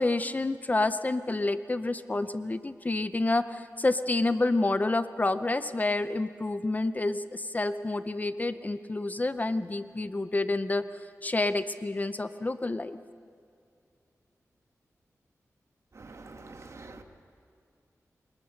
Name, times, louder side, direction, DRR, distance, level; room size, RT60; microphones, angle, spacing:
voice 1, 0.0-10.8 11.2-13.0, left 2 dB, 30° left, 12 dB, 0.6 m, -28 dB
voice 2, 16.0-17.0, right 3 dB, 55° right, 5 dB, 1.6 m, -46 dB
23.0 x 21.0 x 5.9 m, 2.3 s
wide cardioid pair, 85°, 6 cm